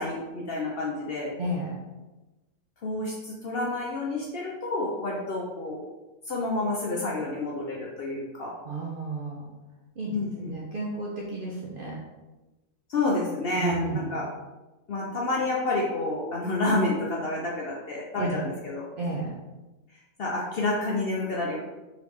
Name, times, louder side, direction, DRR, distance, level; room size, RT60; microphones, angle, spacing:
voice 1, 0.0-1.3 2.8-5.8 6.2-8.5 10.1-10.5 12.9-14.3 14.9-18.9 20.2-21.6, left 2 dB, 55° left, -3 dB, 0.7 m, -29 dB
voice 2, 1.4-1.8 8.7-9.5 10.0-12.0 13.6-14.2 18.2-18.4 19.0-19.3, right 2 dB, 55° right, -4 dB, 0.6 m, -32 dB
3.8 x 3.4 x 3.1 m, 1.1 s
omnidirectional pair, 1.5 m